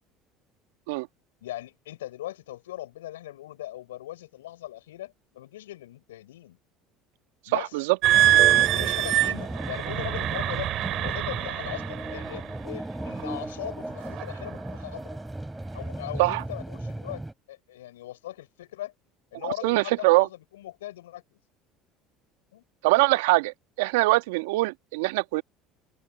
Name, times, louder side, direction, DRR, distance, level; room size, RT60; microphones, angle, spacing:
voice 1, 1.4-6.6 7.5-7.8 8.2-15.2 15.7-18.9 19.3-21.2 22.5-22.6, left 14 dB, 85° left, 6.4 m, -39 dB
voice 2, 7.5-8.0 16.2-16.4 19.4-20.3 22.8-25.4, right 22 dB, 75° right, 1.6 m, -23 dB
sound 1, 8.0-12.5 13.2-13.4 14.0-14.4, right 14 dB, 60° right, 5.8 m, -24 dB
sound 2, 8.1-17.3, right 1 dB, 10° right, 3.5 m, -36 dB
hypercardioid pair, 70°, 0 cm